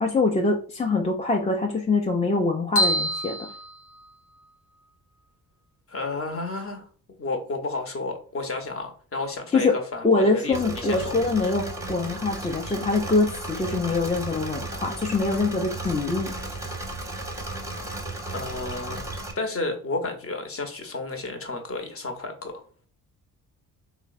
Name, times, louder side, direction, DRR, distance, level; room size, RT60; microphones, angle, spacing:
voice 1, 0.0-3.4 9.5-9.8 10.0-16.3, left 3 dB, 15° left, 1 dB, 0.4 m, -24 dB
sound 1, 2.8-4.5, equal, 65° left, 0.9 m, -27 dB
voice 2, 5.9-6.9 7.2-11.2 18.3-22.6, left 2 dB, 30° left, 5 dB, 0.8 m, -32 dB
Engine / Mechanisms, 10.5-19.3, right 2 dB, 5° right, 0.8 m, -34 dB
3.1 x 2.0 x 2.4 m, 0.40 s
hypercardioid pair, 50°, 43 cm